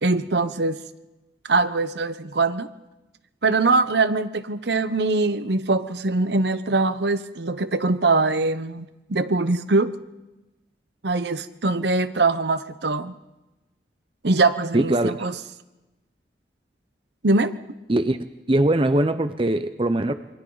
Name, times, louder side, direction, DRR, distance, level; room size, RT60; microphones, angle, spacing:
voice 1, 0.0-0.8 1.5-2.7 3.4-9.9 11.0-13.1 14.2-15.3 17.2-17.5, right 3 dB, 65° right, 0.9 m, -22 dB
voice 2, 14.7-15.1 17.9-18.2 18.5-20.1, right 1 dB, 30° right, 0.7 m, -21 dB
28.0 x 25.0 x 4.0 m
head